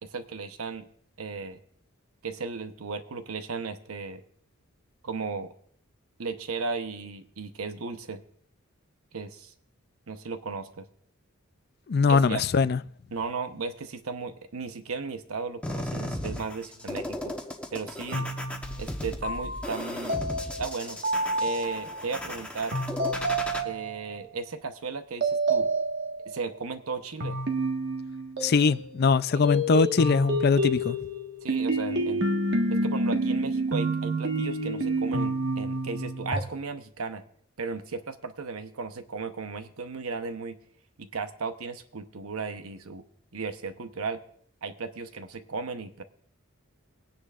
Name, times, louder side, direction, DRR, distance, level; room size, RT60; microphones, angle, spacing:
voice 1, 0.0-0.9 1.2-1.6 2.2-4.2 5.0-5.5 6.2-8.2 9.1-9.5 10.1-10.9 12.1-12.4 13.1-17.4 17.7-18.3 18.8-20.2 20.6-21.0 21.4-22.8 23.6-25.7 26.3-27.4 29.3-29.5 31.4-32.3 32.7-37.2 37.6-40.6 41.0-43.1 43.3-44.2 44.6-46.0, right 4 dB, 85° right, 0.9 m, -35 dB
voice 2, 11.9-12.8 28.4-31.0, left 4 dB, 45° left, 0.4 m, -22 dB
sound 1, 15.6-23.6, left 1 dB, 5° left, 1.0 m, -36 dB
sound 2, 18.1-22.0 22.7-24.2 25.2-26.4 27.2-29.1 29.4-36.4, right 1 dB, 55° right, 1.6 m, -29 dB
22.0 x 10.0 x 2.5 m
head